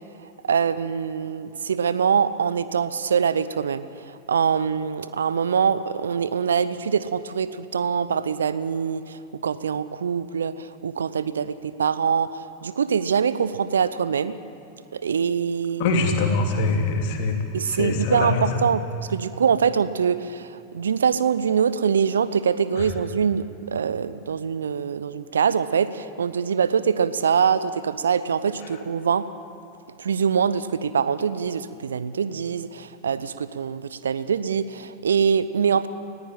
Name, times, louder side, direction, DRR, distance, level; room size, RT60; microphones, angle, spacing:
voice 1, 0.4-14.3 14.9-15.9 17.5-18.8 19.1-29.3 30.0-35.9, right 7 dB, 70° right, 15 dB, 0.7 m, -24 dB
voice 2, 15.8-17.3 17.6-18.4 22.8-22.9, left 3 dB, 50° left, 2 dB, 3.0 m, -23 dB
20.0 x 15.0 x 9.1 m, 2.8 s
figure-of-eight pair, 90°, 0 cm